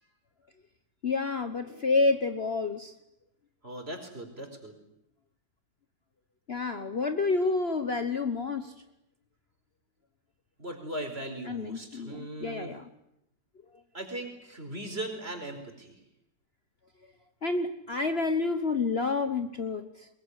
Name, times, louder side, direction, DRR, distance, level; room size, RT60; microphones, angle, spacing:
voice 1, 1.0-2.9 6.5-8.7 11.4-12.9 17.4-20.1, left 3 dB, 40° left, 8 dB, 1.3 m, -29 dB
voice 2, 3.6-4.7 10.6-12.7 13.9-15.9, right 1 dB, 35° right, 5 dB, 4.9 m, -38 dB
22.5 x 22.0 x 9.8 m, 0.80 s
omnidirectional pair, 1.8 m